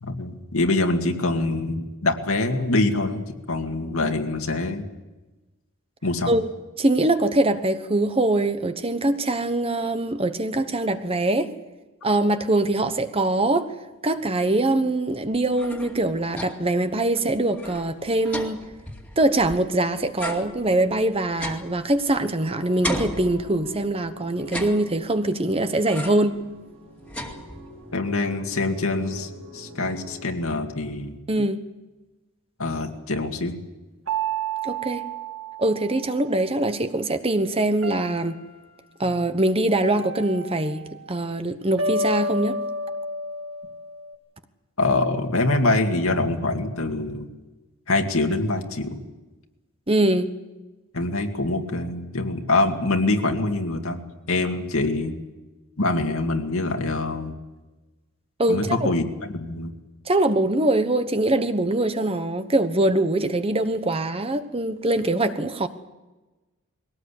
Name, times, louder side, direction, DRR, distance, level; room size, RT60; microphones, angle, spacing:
voice 1, 0.0-4.8 6.0-6.3 27.9-31.2 32.6-33.6 44.8-47.3 47.9-49.0 50.9-54.0 54.3-55.2 55.8-57.3 58.5-59.7, left 2 dB, 75° left, 4 dB, 2.3 m, -24 dB
voice 2, 6.8-11.5 12.0-13.7 14.0-18.6 19.2-26.4 31.3-31.6 34.6-35.0 35.6-38.4 39.0-42.6 49.9-50.3 58.4-58.9 60.1-65.7, right 2 dB, 25° right, 9 dB, 1.1 m, -23 dB
sound 1, 15.3-16.8 17.1-17.2 17.5-19.7 20.2-22.4 22.8-23.9 24.4-25.3 25.9-26.4 26.7-27.9, left 1 dB, 5° left, 2.4 m, -35 dB
sound 2, 22.4-30.3, right 1 dB, 90° right, 4.8 m, -45 dB
sound 3, 34.1-36.4 37.8-38.8 39.8-41.1 41.8-44.1, right 2 dB, 70° right, 2.6 m, -31 dB
22.0 x 17.5 x 8.5 m, 1.1 s
head